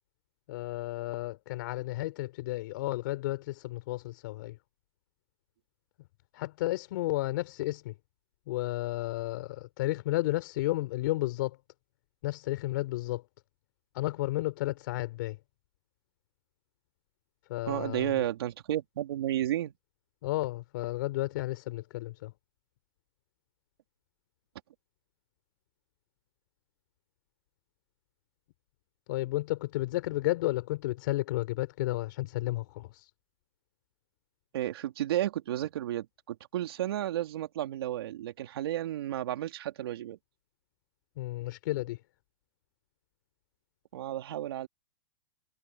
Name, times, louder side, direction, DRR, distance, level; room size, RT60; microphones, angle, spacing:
voice 1, 0.5-4.6 6.3-7.9 8.5-11.6 12.2-13.2 13.9-15.4 17.5-18.3 20.2-22.3 29.1-33.1 41.2-42.0, left 18 dB, 50° left, 3.8 m, -32 dB
voice 2, 17.7-19.7 34.5-40.2 43.9-44.7, right 12 dB, 65° right, 3.1 m, -32 dB
hypercardioid pair, 160°, 14 cm